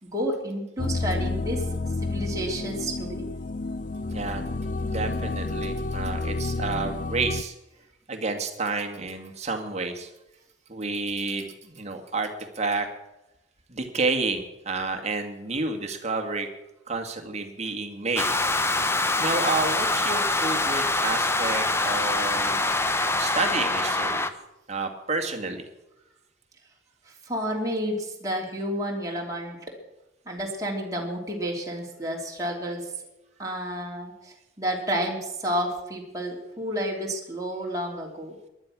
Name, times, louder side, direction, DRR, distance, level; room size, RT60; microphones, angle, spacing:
voice 1, 0.0-1.7 2.0-3.2 27.1-29.6 30.3-32.9 33.4-38.3, equal, 20° right, -2 dB, 3.1 m, -30 dB
sound 1, 0.8-7.4, left 3 dB, 40° left, 0.5 m, -30 dB
voice 2, 4.1-4.5 4.8-7.5 8.1-10.1 10.7-12.3 12.6-12.9 13.7-16.5 16.9-18.3 19.2-22.7 23.2-24.3 24.7-25.6, right 3 dB, 35° right, 5 dB, 2.1 m, -30 dB
sound 2, 18.2-24.3, left 2 dB, 15° left, 0.8 m, -25 dB
19.0 x 12.0 x 6.2 m, 0.94 s
head